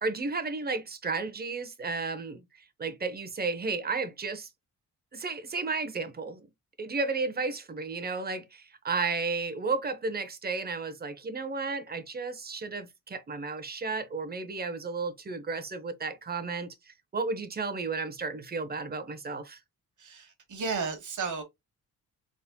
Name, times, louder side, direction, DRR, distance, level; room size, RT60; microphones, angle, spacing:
voice 1, 0.0-2.4 2.8-4.5 5.1-6.5 6.8-19.6, right 4 dB, 25° right, 0.7 m, -33 dB
voice 2, 20.0-21.4, right 5 dB, 55° right, 1.2 m, -33 dB
4.1 x 3.6 x 2.2 m
cardioid pair, 100°, 35 cm